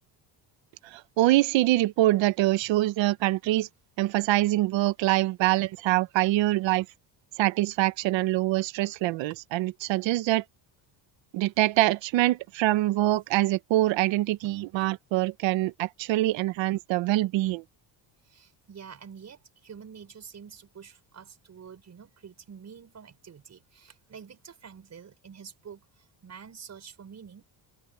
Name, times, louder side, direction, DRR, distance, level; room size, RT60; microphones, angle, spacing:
voice 1, 0.9-3.7 4.0-6.8 7.4-10.4 11.3-17.6, right 16 dB, 85° right, 1.1 m, -24 dB
voice 2, 18.2-27.4, right 7 dB, 35° right, 6.0 m, -47 dB
open air
cardioid pair, 130°, 44 cm